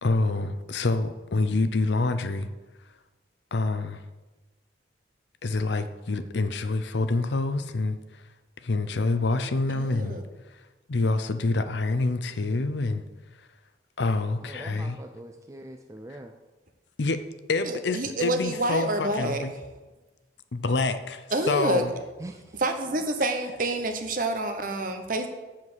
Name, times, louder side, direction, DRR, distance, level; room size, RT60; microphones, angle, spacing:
voice 1, 0.0-2.5 3.5-4.0 5.4-8.2 8.6-10.2 10.9-13.0 14.0-15.0 16.1-16.2 17.0-17.2 17.5-19.5 20.5-21.9, left 3 dB, 65° left, 11 dB, 0.6 m, -27 dB
voice 2, 9.7-10.2 17.6-19.4 21.3-21.8 22.5-25.3, right 1 dB, 45° right, 6 dB, 1.0 m, -28 dB
voice 3, 14.5-16.3 22.2-22.4, right 1 dB, 15° right, 5 dB, 0.4 m, -42 dB
7.4 x 7.4 x 6.2 m, 1.2 s
head